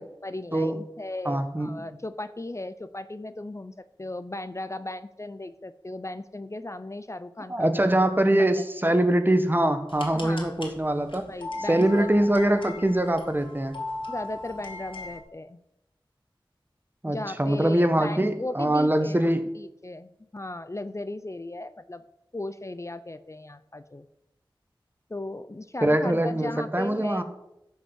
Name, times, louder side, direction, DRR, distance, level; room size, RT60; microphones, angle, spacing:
voice 1, 0.0-8.0 8.4-8.5 10.1-10.6 11.3-12.1 14.1-15.6 17.1-22.0 22.3-24.1 25.1-27.2, left 2 dB, 35° left, 12 dB, 0.5 m, -36 dB
voice 2, 0.5-0.8 1.2-1.8 7.5-11.3 11.7-13.8 17.0-19.4 25.8-27.2, right 1 dB, 25° right, 8 dB, 1.2 m, -23 dB
sound 1, 9.9-15.2, left 2 dB, 75° left, 2.2 m, -39 dB
11.5 x 5.6 x 7.4 m, 0.87 s
wide cardioid pair, 45°, 9 cm